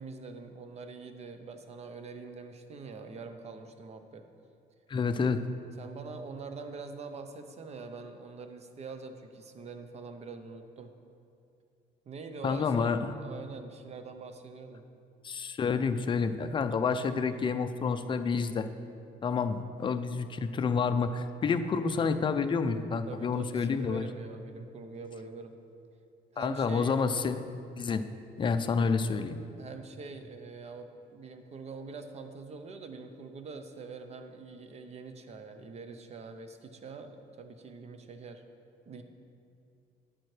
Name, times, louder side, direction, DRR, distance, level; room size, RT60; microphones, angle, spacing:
voice 1, 0.0-4.3 5.8-10.9 12.1-14.8 23.1-25.5 26.3-27.2 29.6-38.4 38.9-39.0, right 4 dB, 40° right, 7 dB, 0.8 m, -44 dB
voice 2, 4.9-5.4 12.4-13.1 15.2-18.7 19.2-24.0 26.4-27.4 27.8-28.0 28.4-29.4, left 5 dB, 30° left, 9 dB, 0.5 m, -29 dB
10.5 x 8.7 x 3.3 m, 2.5 s
cardioid pair, 110°, 17 cm